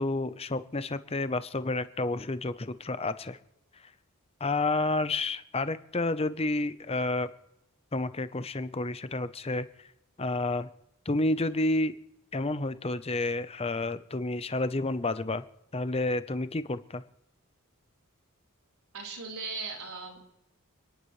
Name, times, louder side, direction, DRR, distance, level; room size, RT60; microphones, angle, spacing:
voice 1, 0.0-3.4 4.4-7.3 7.9-9.7 10.2-10.7 11.1-11.9 12.3-15.4 15.7-17.0, left 2 dB, 25° left, 13 dB, 0.8 m, -30 dB
voice 2, 18.9-20.2, right 4 dB, 80° right, 0 dB, 4.2 m, -38 dB
29.5 x 10.5 x 3.2 m, 0.82 s
head